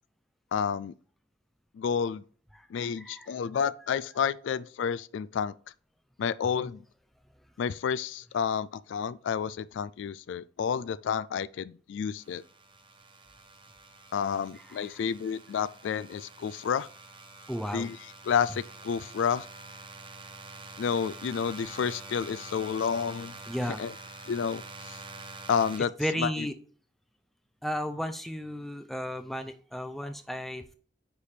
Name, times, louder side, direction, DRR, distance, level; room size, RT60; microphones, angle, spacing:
voice 1, 0.5-0.9 1.7-2.2 2.7-5.5 6.2-6.8 7.6-12.4 14.1-16.9 17.7-19.5 20.8-23.3 23.6-23.9 24.3-25.0 25.5-25.9 26.2-26.5, left 7 dB, 75° left, 0.3 m, -30 dB
voice 2, 2.8-3.3 6.5-6.7 17.5-17.9 23.5-23.8 26.0-26.5 27.6-30.7, equal, ahead, 0.5 m, -34 dB
sound 1, 12.2-25.8, right 3 dB, 25° right, 0.8 m, -46 dB
9.7 x 3.4 x 4.3 m
head